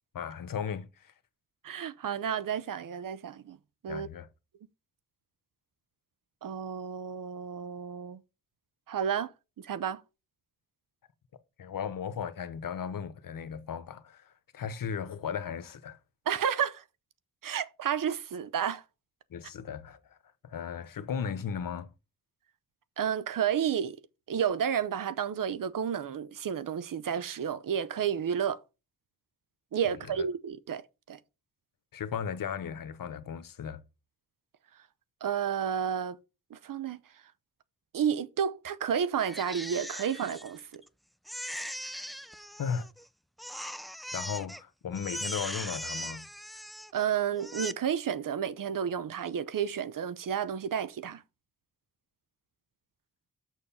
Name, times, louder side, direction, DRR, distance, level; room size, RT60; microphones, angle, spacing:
voice 1, 0.1-1.1 3.9-4.3 11.6-16.0 19.3-20.2 20.4-21.9 30.1-30.2 31.9-33.8 42.6-42.9 44.1-46.2, left 7 dB, 80° left, 1.0 m, -36 dB
voice 2, 1.6-3.6 3.8-4.1 6.4-8.2 8.9-10.0 16.3-16.8 17.4-18.8 23.0-24.0 24.3-28.6 29.7-30.8 31.1-31.2 35.2-36.2 36.5-37.0 37.9-40.8 46.9-51.2, right 8 dB, 80° right, 0.8 m, -31 dB
Crying sobbing, 39.2-40.9 41.3-43.0 43.4-44.6 44.9-47.0 47.4-47.7, equal, ahead, 0.6 m, -39 dB
6.5 x 6.3 x 5.6 m
cardioid pair, 55°, 33 cm